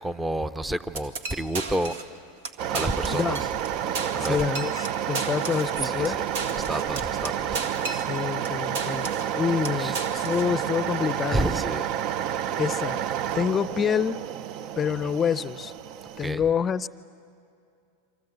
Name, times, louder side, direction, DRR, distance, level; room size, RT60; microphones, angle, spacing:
voice 1, 0.0-2.0 2.7-3.4 4.1-4.4 5.8-6.2 6.7-7.7 9.8-9.9 11.3-11.9 16.2-16.4, right 1 dB, 10° right, 14 dB, 0.7 m, -29 dB
sound 1, 1.0-2.1 2.4-2.5 2.7-3.7 3.9-8.5 8.8-9.3 9.6-10.5, right 3 dB, 80° right, 1.9 m, -34 dB
sound 2, 2.6-16.3, right 10 dB, 50° right, 0.6 m, -30 dB
voice 2, 3.1-3.4 4.2-6.2 8.1-11.5 12.6-13.0 13.3-14.3 14.8-15.7 16.2-16.9, left 7 dB, 25° left, 16 dB, 0.6 m, -27 dB
28.0 x 25.0 x 8.1 m, 2.5 s
hypercardioid pair, 110°, 0 cm